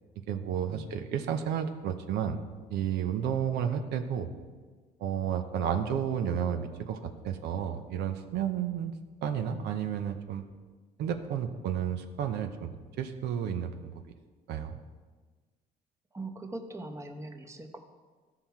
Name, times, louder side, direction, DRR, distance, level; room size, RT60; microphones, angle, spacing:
voice 1, 0.3-2.4 2.7-4.3 5.0-8.9 9.2-10.4 11.0-12.7 13.0-13.9 14.5-14.8, right 8 dB, 80° right, 7 dB, 0.8 m, -32 dB
voice 2, 16.1-17.8, right 2 dB, 15° right, 4 dB, 0.9 m, -41 dB
13.5 x 5.8 x 4.5 m, 1.4 s
cardioid pair, 110°, 17 cm